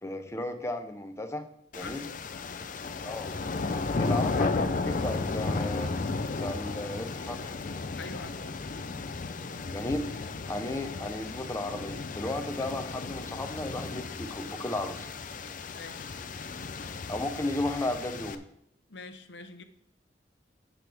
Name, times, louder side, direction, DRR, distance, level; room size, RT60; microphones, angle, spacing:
voice 1, 0.0-1.4 1.7-2.0 3.0-3.3 3.9-5.9 6.4-7.5 9.7-10.1 10.5-15.1 17.1-18.4, left 1 dB, 15° left, 7 dB, 0.8 m, -34 dB
sound 1, 1.7-18.3, left 3 dB, 50° left, 0.5 m, -34 dB
voice 2, 1.8-2.2 8.0-8.6 15.8-16.1 18.9-19.6, left 3 dB, 80° left, 9 dB, 0.8 m, -44 dB
12.0 x 6.2 x 3.5 m, 0.74 s
head